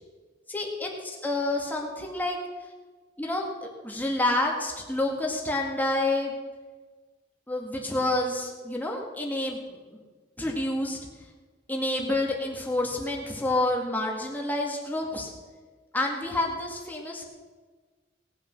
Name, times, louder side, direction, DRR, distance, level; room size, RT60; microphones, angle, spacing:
voice 1, 0.5-2.4 3.2-6.3 7.5-10.0 10.4-11.0 11.7-15.3 15.9-17.2, left 2 dB, 10° left, 0 dB, 2.1 m, -28 dB
18.5 x 7.3 x 6.2 m, 1.4 s
head